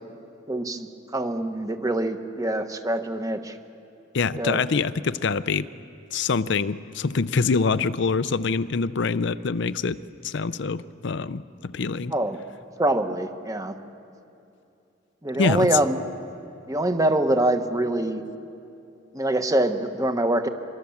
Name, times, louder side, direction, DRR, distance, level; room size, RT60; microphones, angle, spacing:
voice 1, 0.5-3.6 4.4-4.6 12.1-12.4 12.8-13.7 15.2-16.0 16.7-18.2 19.1-20.5, right 1 dB, 20° right, 7 dB, 1.2 m, -24 dB
voice 2, 4.1-5.7 6.1-10.0 10.2-12.1 15.4-15.7, left 4 dB, 65° left, 14 dB, 0.6 m, -25 dB
25.0 x 24.5 x 7.2 m, 2.6 s
head